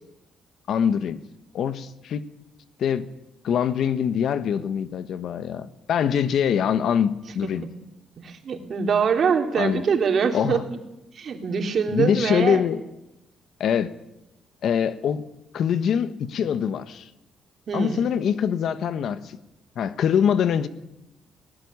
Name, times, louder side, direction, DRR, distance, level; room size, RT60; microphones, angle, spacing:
voice 1, 0.7-1.2 1.5-2.3 2.8-3.1 3.4-7.7 9.6-9.8 10.3-10.6 11.9-12.8 13.6-13.9 14.6-15.3 15.5-17.1 17.7-19.4 19.8-20.7, left 8 dB, 70° left, 1.3 m, -24 dB
voice 2, 8.2-10.6 11.1-12.6 17.7-18.1, right 6 dB, 55° right, 3.4 m, -24 dB
19.0 x 18.0 x 9.7 m
cardioid pair, 90°, 0 cm